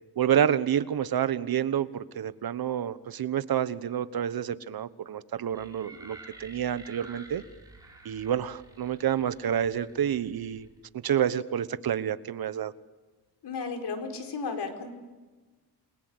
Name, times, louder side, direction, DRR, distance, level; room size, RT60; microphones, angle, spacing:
voice 1, 0.2-7.4 8.0-10.7 10.9-12.7, right 9 dB, 60° right, 15 dB, 1.1 m, -28 dB
sound 1, 5.5-10.8, right 2 dB, 10° right, 6.5 m, -51 dB
voice 2, 13.4-15.0, left 4 dB, 70° left, 5 dB, 4.7 m, -34 dB
29.5 x 22.0 x 7.9 m, 1.3 s
wide cardioid pair, 155°, 41 cm